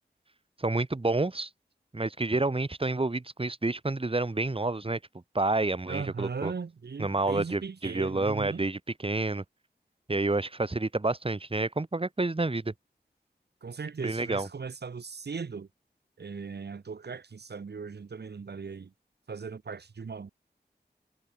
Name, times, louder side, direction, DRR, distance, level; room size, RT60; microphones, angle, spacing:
voice 1, 0.6-1.5 1.9-5.0 5.3-6.5 7.0-9.4 10.1-12.7 14.0-14.5, right 2 dB, 30° right, 1.4 m, -29 dB
voice 2, 5.9-8.7 13.6-15.7 16.2-18.9 19.3-20.3, right 5 dB, 70° right, 1.0 m, -38 dB
cardioid pair, 40°, 18 cm